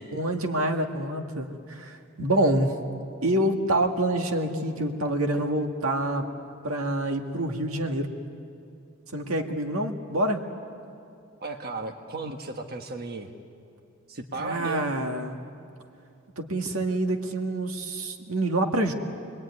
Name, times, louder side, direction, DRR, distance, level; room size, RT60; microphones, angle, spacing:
voice 1, 0.1-2.8 3.2-6.3 6.6-8.1 9.1-10.4 14.4-15.4 16.4-18.9, right 1 dB, 80° right, 5 dB, 2.0 m, -27 dB
voice 2, 11.4-13.3 14.1-15.0, right 3 dB, 50° right, 4 dB, 1.4 m, -35 dB
27.5 x 21.0 x 9.7 m, 2.6 s
head